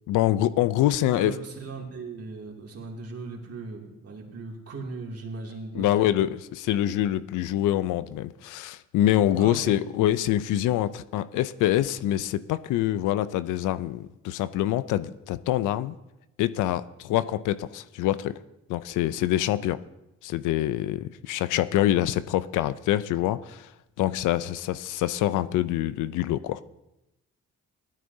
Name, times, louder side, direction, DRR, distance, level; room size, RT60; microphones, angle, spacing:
voice 1, 0.1-1.4 5.7-16.0 16.4-18.4 18.7-19.8 20.2-23.7 24.0-26.6, left 13 dB, 85° left, 15 dB, 0.5 m, -25 dB
voice 2, 1.0-5.9 9.4-9.8, right 3 dB, 50° right, 0 dB, 2.6 m, -38 dB
17.0 x 12.5 x 2.7 m, 0.92 s
cardioid pair, 90°, 30 cm